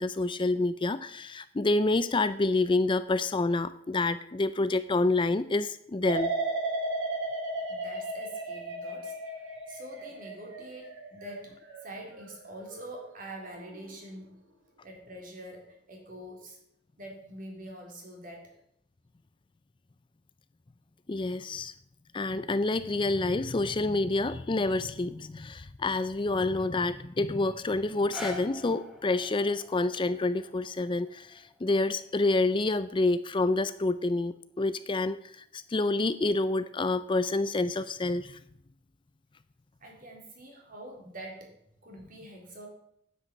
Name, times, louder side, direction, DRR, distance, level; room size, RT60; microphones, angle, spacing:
voice 1, 0.0-6.3 21.1-21.7 22.1-38.4, left 2 dB, 25° left, 13 dB, 0.5 m, -28 dB
sound 1, 6.1-13.0 13.4-13.9, right 2 dB, 80° right, 3.6 m, -35 dB
voice 2, 7.7-9.2 9.7-14.4 14.8-16.6 17.0-18.5 39.8-41.5 41.8-42.7, right 1 dB, 50° right, 0 dB, 3.9 m, -45 dB
sound 2, 27.9-33.9 34.6-34.7, left 2 dB, ahead, 2.1 m, -47 dB
9.8 x 7.9 x 8.7 m, 0.72 s
head